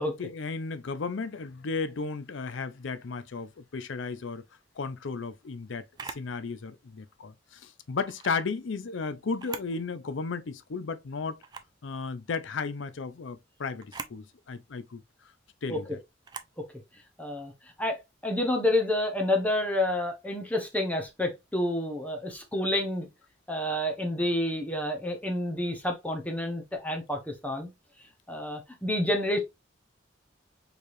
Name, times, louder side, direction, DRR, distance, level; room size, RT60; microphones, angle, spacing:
voice 1, 0.2-4.4 4.8-11.4 11.8-15.0 15.6-16.0, left 4 dB, 75° left, 0.5 m, -34 dB
Camera, 5.9-6.3 8.0-8.4 9.3-9.8 10.2-10.3 11.4-11.8 13.8-14.2 16.2-16.6, right 5 dB, 20° right, 0.4 m, -41 dB
voice 2, 17.2-17.5 17.8-23.1 23.5-27.7 28.3-29.4, left 1 dB, 10° left, 0.8 m, -29 dB
4.6 x 3.3 x 2.6 m
head